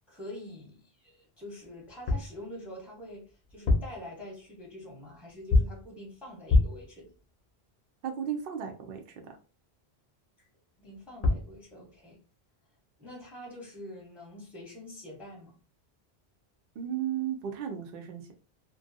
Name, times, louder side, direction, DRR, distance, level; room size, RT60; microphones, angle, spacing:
voice 1, 0.1-7.1 10.8-12.2 13.0-15.6, left 1 dB, ahead, 0.8 m, -45 dB
sound 1, 1.9-2.4 3.5-4.0 5.5-5.9 6.5-6.9 10.9-11.0 11.2-11.6, left 2 dB, 50° left, 0.6 m, -25 dB
voice 2, 8.0-9.0 16.8-18.3, right 9 dB, 65° right, 0.7 m, -34 dB
2.5 x 2.2 x 2.5 m
omnidirectional pair, 1.1 m